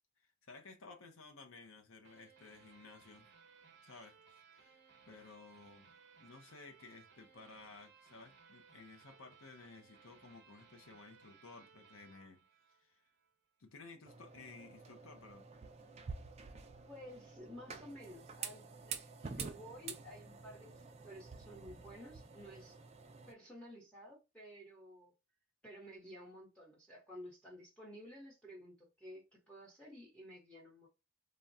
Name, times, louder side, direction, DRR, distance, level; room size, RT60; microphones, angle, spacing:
voice 1, 0.4-3.3 3.8-4.2 4.5-4.8 5.1-5.9 6.2-13.0 13.6-15.5, left 3 dB, 65° left, 0.6 m, -56 dB
sound 1, 2.0-13.3, right 6 dB, 50° right, 0.8 m, -63 dB
sound 2, 14.1-23.3, right 5 dB, 30° right, 0.3 m, -49 dB
voice 2, 16.9-22.8 23.3-25.1 25.6-30.9, equal, 5° left, 0.9 m, -53 dB
3.4 x 2.2 x 2.6 m
head